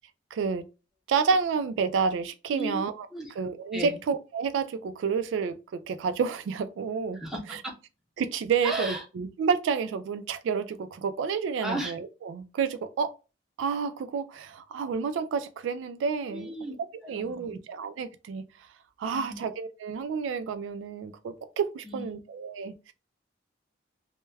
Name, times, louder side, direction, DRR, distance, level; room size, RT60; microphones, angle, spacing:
voice 1, 0.3-0.7 1.1-3.1 3.4-7.2 8.2-13.1 13.6-16.5 17.1-18.7 19.0-22.9, right 6 dB, 80° right, 0.3 m, -30 dB
voice 2, 2.5-3.3 3.7-3.9 7.1-7.7 8.6-9.0 11.6-11.9 16.3-16.7 17.0-17.5 19.0-19.4 21.8-22.1, right 1 dB, ahead, 0.6 m, -35 dB
2.2 x 2.1 x 3.2 m
head